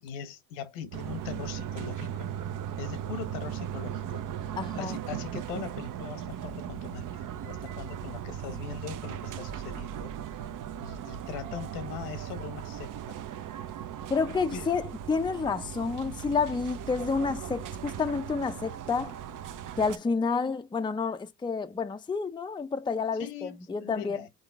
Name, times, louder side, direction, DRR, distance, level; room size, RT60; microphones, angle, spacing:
voice 1, 0.0-2.3 2.8-10.5 10.8-13.2 14.5-14.7 23.2-24.3, left 7 dB, 75° left, 1.2 m, -41 dB
sound 1, 0.9-20.0, right 9 dB, 45° right, 0.7 m, -38 dB
voice 2, 4.6-4.9 14.1-19.1 19.8-24.3, left 5 dB, 10° left, 0.5 m, -29 dB
3.9 x 3.8 x 3.5 m
hypercardioid pair, 70°, 46 cm